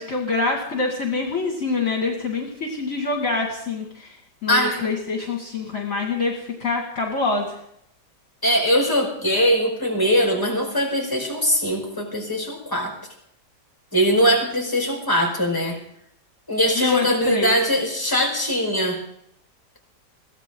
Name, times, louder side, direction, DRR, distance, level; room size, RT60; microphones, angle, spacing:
voice 1, 0.0-4.2 4.4-7.6 16.8-17.5, left 3 dB, 50° left, 1 dB, 2.5 m, -25 dB
voice 2, 4.5-4.8 8.4-12.9 13.9-15.8 16.5-19.0, equal, 10° left, 1 dB, 4.8 m, -21 dB
22.5 x 16.0 x 3.8 m, 0.73 s
omnidirectional pair, 1.9 m